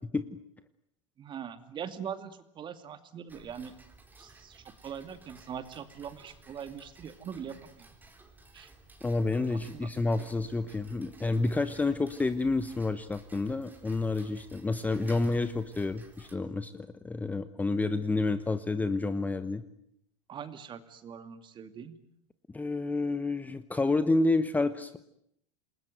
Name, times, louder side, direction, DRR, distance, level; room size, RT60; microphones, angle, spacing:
voice 1, 1.2-3.7 4.2-7.9 8.5-8.7 9.5-9.9 20.3-21.9, right 8 dB, 30° right, 10 dB, 2.4 m, -42 dB
Tick-tock, 3.3-16.3, right 2 dB, 10° right, 3.9 m, -55 dB
voice 2, 9.0-19.6 22.5-25.0, left 3 dB, 10° left, 12 dB, 1.1 m, -29 dB
28.0 x 21.0 x 9.3 m, 0.73 s
supercardioid pair, 130°, 17 cm